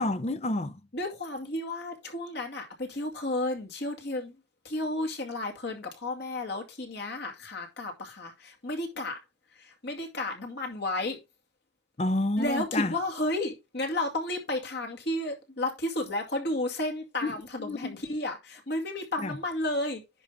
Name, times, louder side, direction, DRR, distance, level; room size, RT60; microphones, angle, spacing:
voice 1, 0.0-0.8 12.0-12.9 17.2-18.0 19.2-19.4, left 2 dB, 35° left, 0.7 m, -29 dB
voice 2, 0.9-4.3 4.6-9.2 9.6-11.2 12.4-20.0, left 1 dB, 60° left, 2.2 m, -32 dB
10.0 x 5.6 x 3.6 m
head